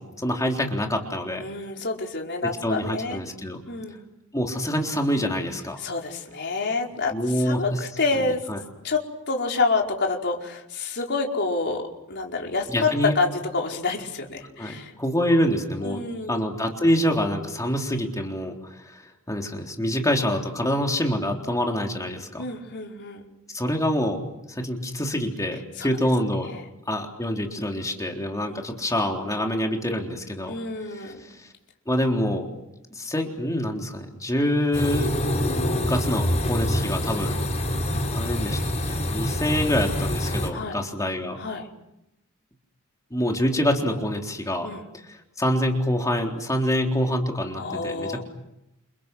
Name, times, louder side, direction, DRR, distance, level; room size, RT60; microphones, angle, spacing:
voice 1, 0.0-1.5 2.6-3.6 4.3-5.8 7.1-7.6 8.5-8.6 12.7-13.1 14.6-16.0 16.3-22.4 23.5-24.2 24.5-26.6 26.9-30.5 31.0-31.5 31.9-32.5 32.9-35.1 35.8-37.4 38.1-41.4 43.1-44.7 45.1-48.2, equal, 15° left, 1 dB, 3.8 m, -26 dB
voice 2, 1.4-3.2 3.7-4.0 5.8-8.5 8.8-14.9 15.8-16.4 22.4-23.3 25.8-25.9 26.5-26.6 28.5-28.9 30.5-31.3 40.5-40.8 41.4-41.7 44.6-44.8 47.6-48.2, left 3 dB, 55° left, 0 dB, 4.9 m, -28 dB
sound 1, 34.7-40.5, equal, 30° left, 5.6 m, -26 dB
30.0 x 29.5 x 6.3 m, 0.86 s
head